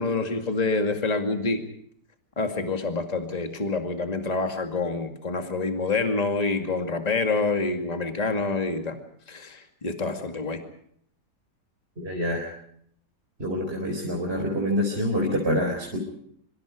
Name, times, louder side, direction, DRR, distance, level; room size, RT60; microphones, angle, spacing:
voice 1, 0.0-1.6 2.4-9.0 9.3-10.6, left 3 dB, 25° left, 5 dB, 2.3 m, -27 dB
voice 2, 12.0-12.5 13.4-16.0, equal, 35° right, 0 dB, 4.5 m, -26 dB
26.0 x 25.0 x 5.0 m, 0.67 s
omnidirectional pair, 1.8 m